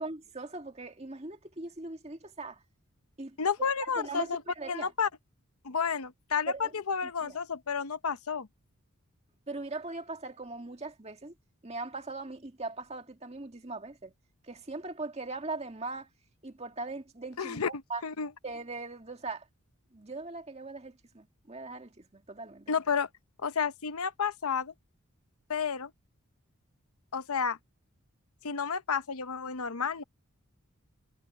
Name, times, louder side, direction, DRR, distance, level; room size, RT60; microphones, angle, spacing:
voice 1, 0.0-2.6 3.2-4.9 6.5-6.7 7.0-7.4 9.5-11.3 11.6-14.1 14.4-16.1 16.4-18.0 18.4-19.5 19.9-22.7, right 3 dB, 30° right, 2.0 m, -40 dB
voice 2, 3.4-4.4 4.7-5.1 5.6-8.5 17.4-17.7 18.0-18.3 22.7-23.1 23.4-24.7 25.5-25.9 27.1-27.6 28.4-30.0, left 6 dB, 90° left, 0.9 m, -31 dB
head